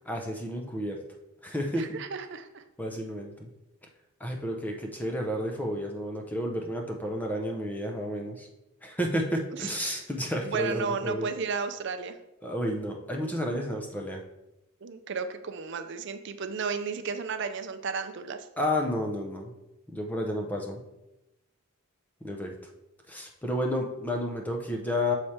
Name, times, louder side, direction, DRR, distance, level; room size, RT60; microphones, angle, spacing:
voice 1, 0.1-1.0 1.4-2.0 2.8-3.5 4.2-8.5 8.8-11.3 12.4-14.2 18.6-19.5 19.9-20.8 22.2-22.5 23.1-25.1, equal, 10° left, 2 dB, 0.6 m, -31 dB
voice 2, 1.8-2.6 9.5-9.7 10.4-12.1 14.8-18.5, right 5 dB, 55° right, 8 dB, 0.5 m, -33 dB
7.0 x 3.2 x 4.3 m, 0.94 s
head